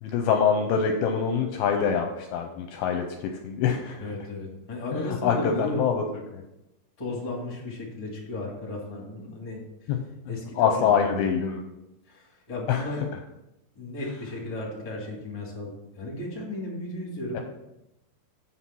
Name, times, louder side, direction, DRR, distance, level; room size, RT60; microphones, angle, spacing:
voice 1, 0.0-3.0 3.4-4.0 4.9-6.0 6.3-6.4 9.9-10.0 10.6-11.6 12.7-12.9 17.3-17.4, left 7 dB, 80° left, 4 dB, 2.3 m, -24 dB
voice 2, 4.0-5.9 7.0-9.6 10.3-11.2 12.1-13.0 13.7-15.7 15.9-17.4, left 2 dB, 15° left, -2 dB, 1.5 m, -34 dB
8.3 x 5.7 x 6.0 m, 0.89 s
omnidirectional pair, 4.9 m